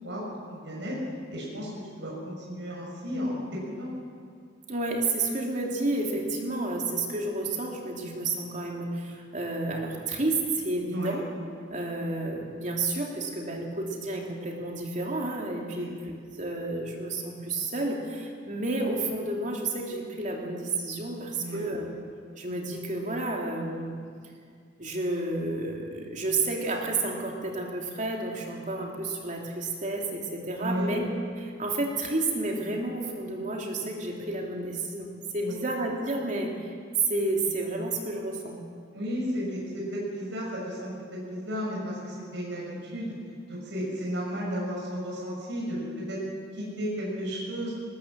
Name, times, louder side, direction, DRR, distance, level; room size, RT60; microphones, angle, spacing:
voice 1, 0.0-1.0 1.3-3.4 3.8-3.9 10.9-11.2 15.7-16.0 21.4-21.7 30.6-30.9 35.4-35.6 38.9-43.1 43.5-45.8 46.1-46.2 46.5-47.7, equal, 75° right, -4 dB, 6.4 m, -33 dB
voice 2, 4.7-11.2 11.7-21.9 22.4-23.9 24.8-31.1 31.4-36.7 37.1-38.5, right 2 dB, 40° right, 0 dB, 3.1 m, -31 dB
20.0 x 19.5 x 7.6 m, 2.2 s
head